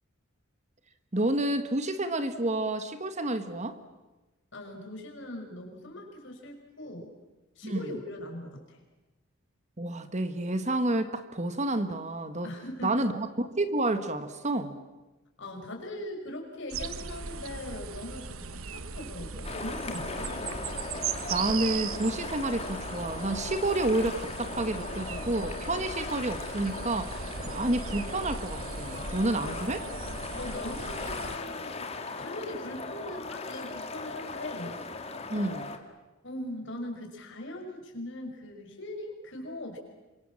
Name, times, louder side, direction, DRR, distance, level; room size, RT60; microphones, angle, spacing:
voice 1, 1.1-3.8 7.6-7.9 9.8-12.5 12.8-14.7 21.3-29.8 35.3-35.7, right 2 dB, 35° right, 10 dB, 1.5 m, -29 dB
voice 2, 4.5-7.1 7.6-8.8 12.4-13.1 15.4-20.3 29.4-31.9 32.2-34.8 36.2-39.8, left 1 dB, 60° left, 2 dB, 6.2 m, -40 dB
sound 1, 16.7-31.4, right 5 dB, 75° right, 1.2 m, -38 dB
sound 2, 19.4-35.8, left 3 dB, 30° left, 2.2 m, -38 dB
28.5 x 25.0 x 7.5 m, 1.1 s
head